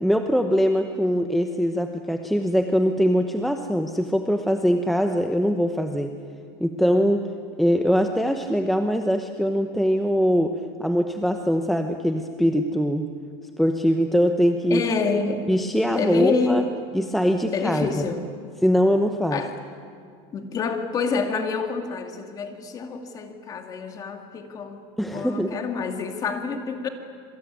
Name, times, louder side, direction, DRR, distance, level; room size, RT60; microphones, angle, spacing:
voice 1, 0.0-6.1 6.6-7.2 7.6-13.1 13.6-14.8 15.5-16.6 16.9-18.1 18.6-19.4 25.0-25.6, equal, ahead, 5 dB, 0.9 m, -22 dB
voice 2, 14.7-15.5 15.9-16.7 17.5-18.3 19.3-19.6 20.3-24.8 25.1-26.9, left 4 dB, 25° left, 5 dB, 2.4 m, -27 dB
27.0 x 23.0 x 9.5 m, 2.2 s
supercardioid pair, 160°, 15 cm